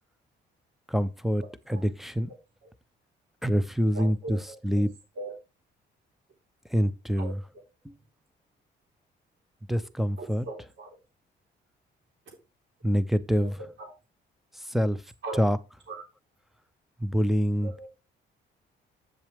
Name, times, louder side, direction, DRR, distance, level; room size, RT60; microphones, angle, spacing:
voice 1, 0.9-2.3 3.4-4.9 6.7-7.4 7.8-7.9 9.7-10.5 12.8-13.6 14.6-15.0 15.4-15.6 17.0-17.9, equal, ahead, 0.7 m, -26 dB
voice 2, 1.4-1.8 2.6-2.7 3.9-4.8 5.1-5.3 7.2-7.3 10.2-11.0 13.3-13.9 15.2-15.5 15.9-16.0 17.6-17.9, right 2 dB, 70° right, 3.9 m, -40 dB
7.4 x 7.2 x 3.4 m
cardioid pair, 90°, 20 cm